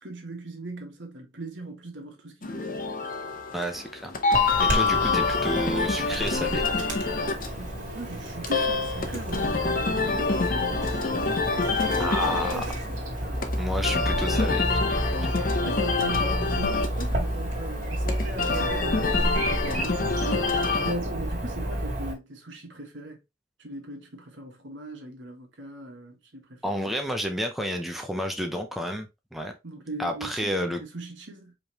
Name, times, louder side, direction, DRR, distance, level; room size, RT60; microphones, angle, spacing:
voice 1, 0.0-2.7 7.6-14.6 15.2-23.2 23.6-27.0 29.6-31.5, right 2 dB, 80° right, 1.4 m, -39 dB
sound 1, 2.4-20.9, left 4 dB, 50° left, 0.7 m, -27 dB
voice 2, 3.5-4.1 4.6-6.7 12.0-12.7 13.6-14.8 15.3-15.5 26.6-29.1 29.3-29.5 30.0-30.8, equal, ahead, 0.6 m, -30 dB
Chirp tweet / Buzz, 4.3-22.1, equal, 45° right, 1.9 m, -31 dB
5.0 x 3.2 x 2.9 m
head